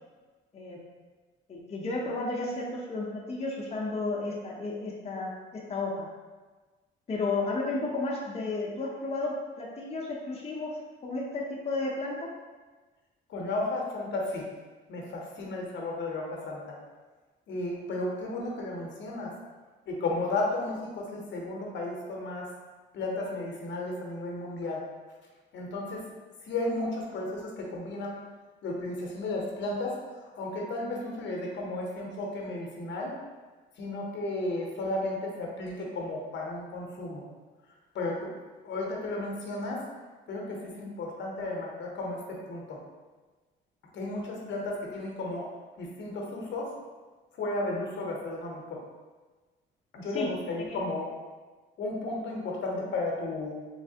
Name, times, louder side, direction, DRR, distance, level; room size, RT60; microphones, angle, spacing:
voice 1, 1.5-6.1 7.1-9.3 9.6-10.7 11.0-12.3 50.1-50.3 50.6-50.8, left 3 dB, 30° left, -3 dB, 0.6 m, -33 dB
voice 2, 13.3-14.4 14.9-16.8 17.5-19.3 19.9-22.5 22.9-24.8 25.5-26.0 26.4-28.2 28.6-30.0 30.4-33.1 33.8-37.2 37.9-38.3 38.6-39.8 40.3-42.8 43.9-45.5 45.8-46.7 47.4-48.8 49.9-51.1 51.8-53.6, left 2 dB, 65° left, -1 dB, 0.8 m, -33 dB
3.2 x 3.1 x 2.7 m, 1.3 s
cardioid pair, 90°, 20 cm